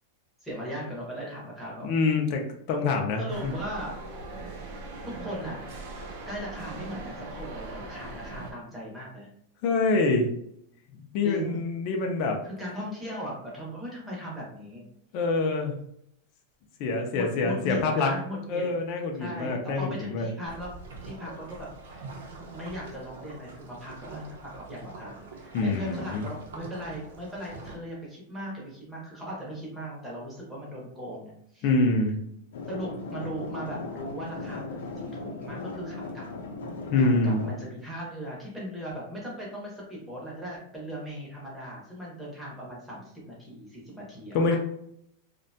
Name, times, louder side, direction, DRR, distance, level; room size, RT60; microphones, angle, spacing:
voice 1, 0.4-1.9 3.2-4.0 5.0-5.6 6.3-9.3 11.2-11.6 12.4-14.8 17.1-18.7 19.2-20.7 21.0-31.6 32.7-36.3 37.0-44.6, equal, 5° right, -5 dB, 0.6 m, -38 dB
voice 2, 1.8-2.4 2.7-3.5 9.6-10.3 11.1-12.4 15.1-15.8 16.8-18.1 18.5-20.3 25.5-26.2 31.6-32.2 36.9-37.5 44.3-44.6, left 3 dB, 30° left, 2 dB, 0.3 m, -25 dB
sound 1, 3.3-8.5, right 2 dB, 40° right, 0.4 m, -40 dB
sound 2, 20.4-27.8, right 3 dB, 80° right, 0.6 m, -44 dB
sound 3, 32.5-37.5, left 3 dB, 85° left, 0.5 m, -38 dB
2.5 x 2.1 x 2.6 m, 0.71 s
supercardioid pair, 180°, 0 cm